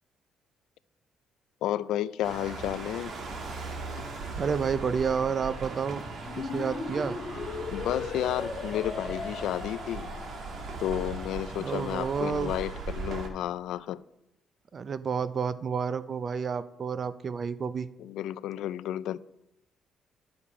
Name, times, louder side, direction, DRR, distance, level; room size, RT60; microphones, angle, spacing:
voice 1, 1.6-3.1 7.7-10.1 10.8-14.0 18.0-19.2, left 12 dB, 75° left, 0.3 m, -32 dB
sound 1, 2.2-13.3, right 4 dB, 50° right, 1.3 m, -39 dB
voice 2, 4.4-6.0 6.4-7.2 11.6-12.5 14.7-17.9, right 6 dB, 35° right, 0.4 m, -30 dB
sound 2, 6.2-11.0, left 4 dB, 30° left, 1.1 m, -38 dB
10.0 x 7.1 x 4.9 m
cardioid pair, 155°, 0 cm